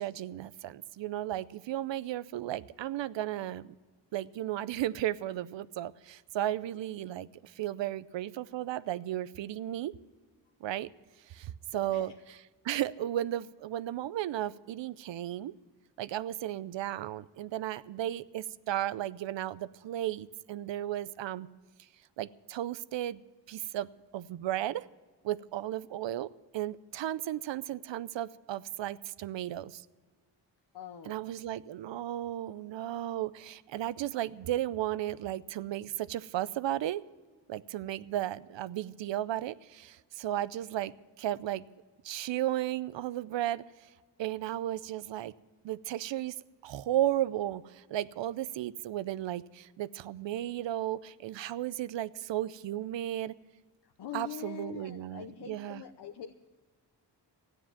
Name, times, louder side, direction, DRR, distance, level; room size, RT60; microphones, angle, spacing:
voice 1, 0.0-3.7 4.1-9.9 10.6-10.9 11.3-12.1 12.6-15.5 16.0-21.5 21.8-21.9 22.2-23.2 23.5-24.9 25.2-29.8 31.1-37.0 37.5-40.9 41.2-41.6 42.0-43.9 44.2-45.3 45.6-46.4 46.6-53.3 54.1-55.8, right 13 dB, 85° right, 18 dB, 0.6 m, -34 dB
voice 2, 11.7-12.2 30.7-31.3 53.8-56.4, left 10 dB, 70° left, 5 dB, 0.9 m, -44 dB
14.0 x 9.7 x 7.2 m, 1.4 s
cardioid pair, 70°, 43 cm